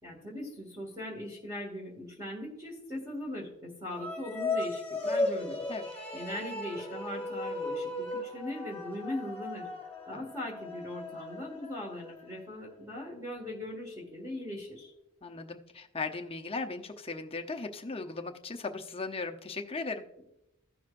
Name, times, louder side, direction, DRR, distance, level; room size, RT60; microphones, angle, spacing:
voice 1, 0.0-5.6 6.1-9.7 10.1-14.9, left 1 dB, 15° right, -2 dB, 1.8 m, -40 dB
sound 1, 3.9-12.4, left 2 dB, 5° left, 1.6 m, -36 dB
voice 2, 15.2-20.0, left 3 dB, 25° left, 4 dB, 0.7 m, -37 dB
16.0 x 6.1 x 2.5 m, 0.86 s
head